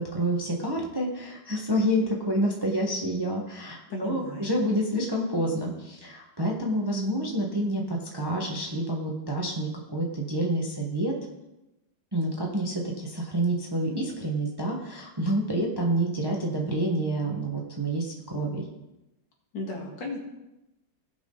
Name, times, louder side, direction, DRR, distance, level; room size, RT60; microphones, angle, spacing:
voice 1, 0.0-11.1 12.1-18.7, right 1 dB, 15° right, -1 dB, 1.1 m, -28 dB
voice 2, 3.9-4.5 19.5-20.2, left 2 dB, 65° left, -1 dB, 2.5 m, -35 dB
17.5 x 5.9 x 3.9 m, 0.95 s
omnidirectional pair, 2.2 m